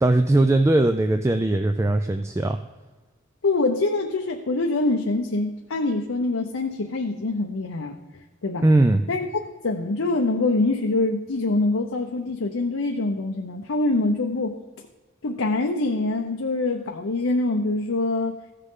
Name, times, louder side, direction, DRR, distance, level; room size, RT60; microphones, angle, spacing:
voice 1, 0.0-2.6 8.6-9.0, right 2 dB, 15° right, 7 dB, 0.3 m, -19 dB
voice 2, 3.4-8.0 8.4-8.7 9.1-9.3 9.6-14.6 15.2-18.3, left 2 dB, 85° left, 2 dB, 0.7 m, -24 dB
15.0 x 6.7 x 3.7 m, 1.2 s
head